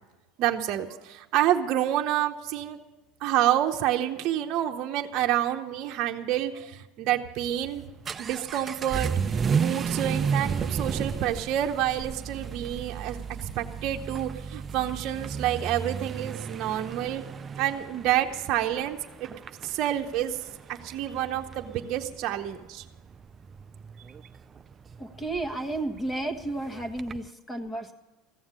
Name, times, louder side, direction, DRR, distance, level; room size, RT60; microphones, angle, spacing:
voice 1, 0.4-2.8 3.2-7.8 8.2-17.2 17.6-19.3 19.6-20.4 20.7-22.8, right 12 dB, 55° right, 3 dB, 0.8 m, -28 dB
Vehicle / Accelerating revving vroom, 7.5-27.3, right 6 dB, 30° right, 0.4 m, -34 dB
voice 2, 25.0-27.9, right 2 dB, 15° left, 7 dB, 1.3 m, -32 dB
15.0 x 7.2 x 9.7 m, 1.1 s
supercardioid pair, 110°, 0 cm